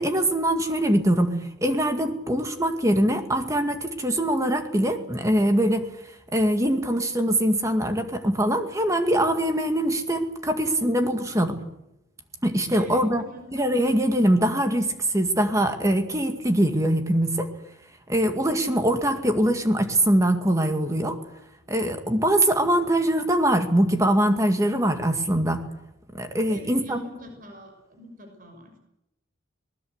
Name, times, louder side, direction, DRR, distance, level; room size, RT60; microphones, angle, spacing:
voice 1, 0.0-5.9 6.3-11.6 12.4-13.2 13.5-17.5 18.1-21.2 21.7-25.6 26.1-27.0, right 1 dB, 15° right, 6 dB, 2.0 m, -23 dB
voice 2, 12.7-13.5 26.5-28.7, equal, 40° right, 4 dB, 6.1 m, -44 dB
25.5 x 20.0 x 8.1 m, 0.85 s
head